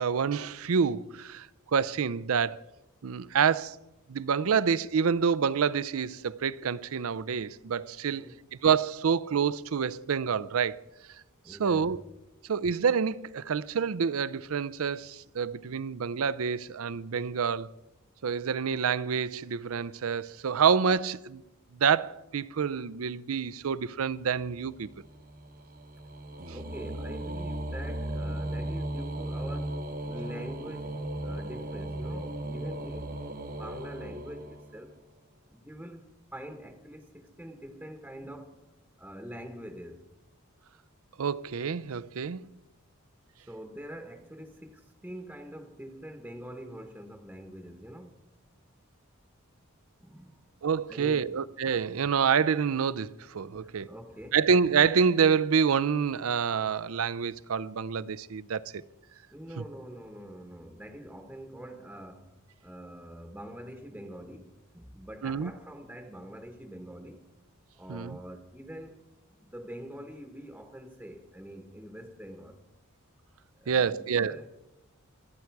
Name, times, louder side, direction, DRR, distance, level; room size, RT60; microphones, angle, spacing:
voice 1, 0.0-1.5 1.7-2.6 3.0-3.8 4.1-8.3 8.6-10.8 11.5-12.0 12.5-17.7 18.2-21.4 21.8-24.9 41.2-42.4 50.6-53.9 54.3-58.8 65.2-65.5 67.9-68.2 73.7-74.4, right 6 dB, 75° right, 0.5 m, -27 dB
voice 2, 8.1-8.4 11.4-11.9 26.5-33.2 33.5-35.0 35.5-38.7 39.0-40.1 43.5-48.2 50.0-50.4 50.9-51.4 53.4-54.4 59.3-62.3 62.6-67.3 67.7-69.0 69.3-72.6 73.6-74.5, equal, 5° right, 1.0 m, -44 dB
sound 1, 24.1-35.0, right 1 dB, 40° right, 0.9 m, -37 dB
26.0 x 9.7 x 4.6 m
head